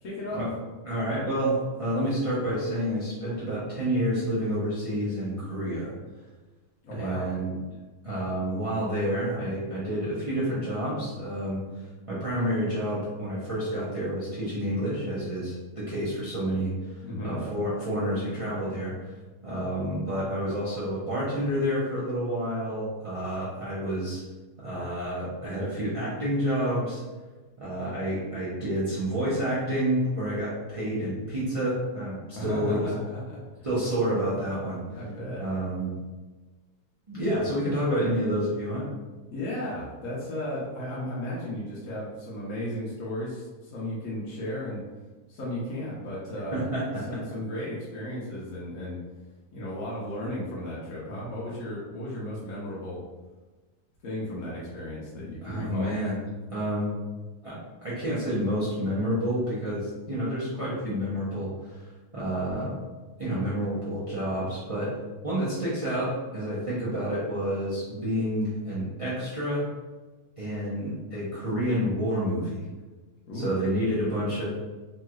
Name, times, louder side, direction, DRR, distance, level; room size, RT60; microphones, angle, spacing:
voice 1, 0.0-0.5 6.8-7.2 17.0-17.4 32.3-33.4 34.9-35.4 39.3-44.8 45.3-46.6 47.1-49.0 49.5-53.0 54.0-55.9 73.3-73.5, left 1 dB, 65° left, -7 dB, 1.0 m, -35 dB
voice 2, 0.8-5.9 6.9-7.6 8.0-11.6 12.1-18.9 19.4-24.2 24.6-27.0 27.6-32.9 33.6-34.8 35.4-35.9 37.1-38.9 46.5-47.2 55.4-56.2 56.5-57.0 57.4-61.8 62.1-62.8 63.2-65.0 65.2-69.7 70.4-72.6 73.3-74.4, equal, 45° right, -9 dB, 0.4 m, -29 dB
3.1 x 2.9 x 2.3 m, 1.3 s
omnidirectional pair, 1.7 m